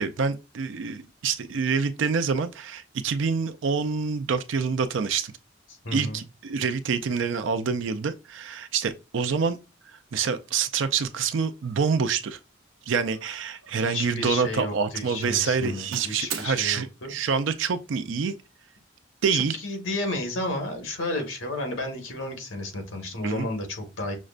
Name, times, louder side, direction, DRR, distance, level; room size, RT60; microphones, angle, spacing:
voice 1, 0.0-5.3 5.9-9.6 9.9-12.4 12.9-18.3 19.2-19.6 23.2-23.5, right 5 dB, 70° right, 0.4 m, -26 dB
voice 2, 5.8-6.2 13.7-17.1 19.3-24.2, left 2 dB, 80° left, 1.4 m, -32 dB
Doorbell, 10.2-10.4 11.0-11.3 11.6-12.0 13.0-14.1 14.3-14.8 15.2-16.5, right 7 dB, 90° right, 0.9 m, -41 dB
6.2 x 2.1 x 2.4 m
head